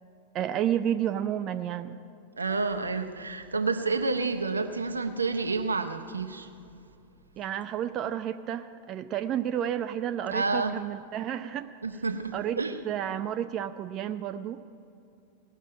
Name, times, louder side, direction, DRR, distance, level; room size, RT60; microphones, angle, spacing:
voice 1, 0.3-2.0 7.4-12.0 12.3-12.6 12.8-14.6, right 10 dB, 35° right, 0.4 m, -31 dB
voice 2, 2.4-6.5 10.3-10.8 11.8-12.8, right 4 dB, 75° right, 0.8 m, -29 dB
18.0 x 6.5 x 9.9 m
figure-of-eight pair, 90°, 0 cm